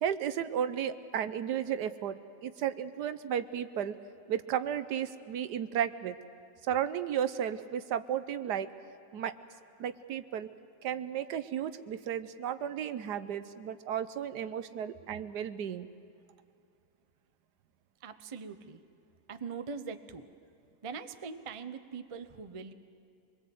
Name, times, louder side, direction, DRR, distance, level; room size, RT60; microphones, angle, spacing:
voice 1, 0.0-4.0 4.3-6.2 6.7-8.7 9.1-9.3 9.8-10.5 10.8-15.9, right 9 dB, 75° right, 12 dB, 1.3 m, -34 dB
voice 2, 18.0-18.8 19.3-20.3 20.8-22.7, right 5 dB, 35° right, 9 dB, 0.5 m, -42 dB
24.5 x 21.5 x 7.9 m, 2.5 s
omnidirectional pair, 1.8 m